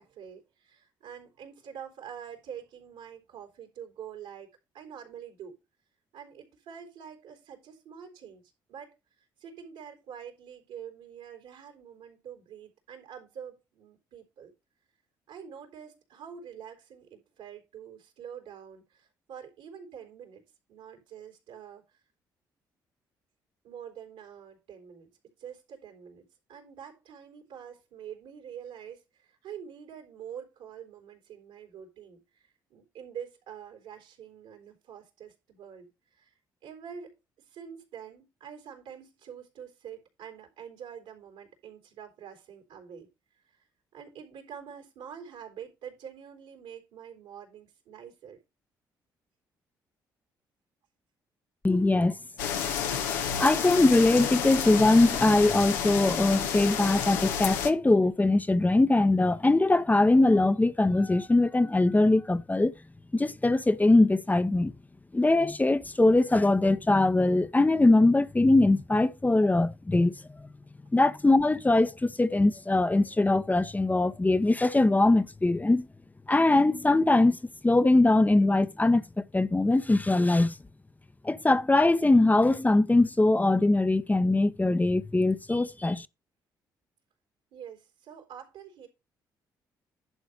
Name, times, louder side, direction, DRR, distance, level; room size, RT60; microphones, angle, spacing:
voice 1, 0.0-4.5 4.7-5.6 6.1-8.4 8.7-14.5 15.3-20.4 20.7-22.0 23.6-25.1 25.4-37.1 37.4-43.1 43.3-43.7 43.9-48.4 87.5-88.9, right 8 dB, 75° right, 3.9 m, -46 dB
voice 2, 51.6-52.1 53.4-62.7 63.1-64.7 65.1-70.5 70.9-75.9 76.3-77.4 77.6-80.6 81.2-86.1, left 2 dB, 15° left, 0.9 m, -22 dB
sound 1, 52.4-57.7, left 8 dB, 85° left, 1.1 m, -30 dB
11.0 x 4.0 x 6.5 m
hypercardioid pair, 50°, 10 cm